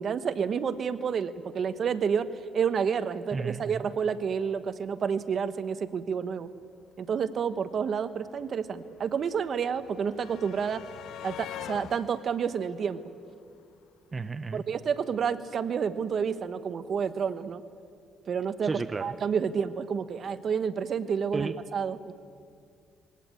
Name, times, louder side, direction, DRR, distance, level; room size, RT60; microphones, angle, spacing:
voice 1, 0.0-2.3 2.5-6.5 7.0-10.8 11.2-13.0 14.5-17.6 18.3-18.7 19.0-22.1, right 7 dB, 55° right, 12 dB, 1.0 m, -29 dB
voice 2, 3.3-3.8 14.1-14.6 18.6-19.1 21.3-21.6, right 4 dB, 30° right, 11 dB, 0.7 m, -33 dB
sound 1, 7.4-7.5 7.6-13.8 15.0-15.1 15.4-15.6, left 11 dB, 80° left, 0.7 m, -45 dB
21.0 x 17.0 x 9.0 m, 2.3 s
cardioid pair, 90°, 0 cm